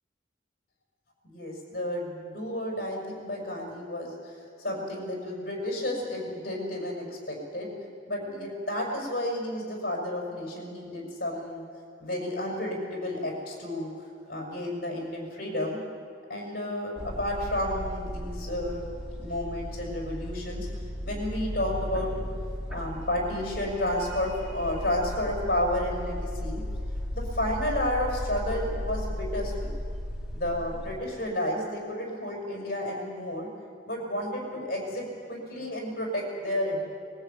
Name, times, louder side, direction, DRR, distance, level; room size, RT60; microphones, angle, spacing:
voice 1, 1.2-7.7 8.1-11.6 12.0-13.9 14.3-15.8 16.3-18.8 19.1-20.7 21.0-22.2 22.7-26.6 27.1-29.7 30.3-33.5 33.9-36.9, left 1 dB, 50° left, -1 dB, 6.3 m, -31 dB
sound 1, 17.0-31.0, equal, 5° right, 1.9 m, -35 dB
21.0 x 17.5 x 8.8 m, 2.3 s
head